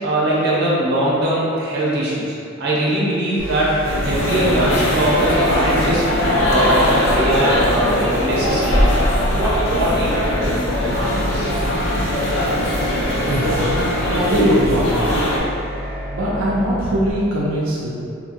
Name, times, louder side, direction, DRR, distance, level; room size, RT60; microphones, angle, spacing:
voice 1, 0.0-3.7 4.0-8.7 9.4-10.4 10.7-11.5, right 1 dB, 55° right, -7 dB, 0.7 m, -21 dB
sound 1, 3.4-17.1, equal, 10° left, 0.4 m, -30 dB
sound 2, 3.8-15.4, left 1 dB, 65° left, 0.5 m, -20 dB
voice 2, 13.1-13.7 14.1-15.0 16.1-17.9, right 1 dB, 90° right, -6 dB, 0.5 m, -21 dB
2.8 x 2.7 x 2.5 m, 2.6 s
head